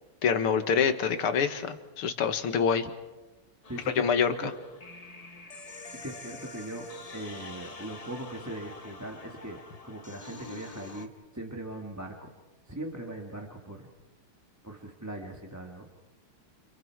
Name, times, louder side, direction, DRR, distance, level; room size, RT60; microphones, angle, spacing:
voice 1, 0.2-2.9 4.0-4.5, left 6 dB, 85° left, 8 dB, 2.3 m, -26 dB
sound 1, 3.6-11.1, left 3 dB, 30° left, 0.7 m, -46 dB
voice 2, 3.7-4.5 5.9-9.6 9.8-12.3 12.6-13.9 14.6-15.9, right 1 dB, 10° right, 1 dB, 1.6 m, -40 dB
29.5 x 29.5 x 4.7 m, 1.1 s
omnidirectional pair, 2.3 m